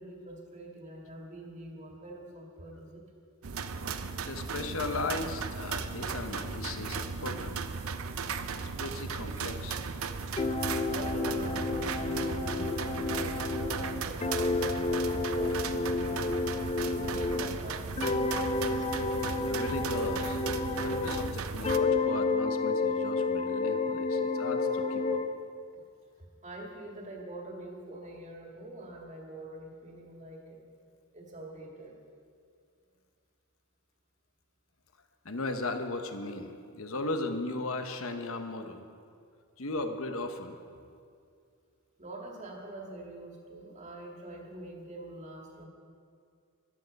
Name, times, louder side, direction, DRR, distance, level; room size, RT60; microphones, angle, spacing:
voice 1, 0.0-3.0 10.9-16.5 16.9-18.9 26.4-30.6 31.1-32.0 42.0-45.7, right 1 dB, 35° right, 0 dB, 2.1 m, -44 dB
sound 1, 3.4-21.8, right 5 dB, 75° right, 0.7 m, -36 dB
voice 2, 4.2-7.6 8.8-9.8 19.4-20.4 20.8-25.2 35.2-38.8 39.6-40.6, left 2 dB, 70° left, 7 dB, 1.0 m, -37 dB
sound 2, 10.4-17.6 18.0-21.3 21.6-25.3, left 3 dB, 25° left, 0.5 m, -30 dB
14.5 x 12.0 x 5.3 m, 2.3 s
head